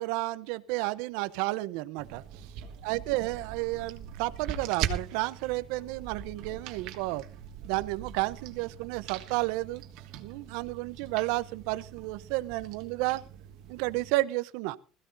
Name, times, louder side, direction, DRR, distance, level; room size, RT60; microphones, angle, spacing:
voice 1, 0.0-2.5 2.8-7.2 7.6-9.8 10.2-13.2 13.7-14.8, right 19 dB, 75° right, 15 dB, 0.7 m, -31 dB
sound 1, 2.0-14.1, right 9 dB, 60° right, 1.5 m, -41 dB
20.5 x 14.5 x 2.6 m, 0.35 s
cardioid pair, 150°, 0 cm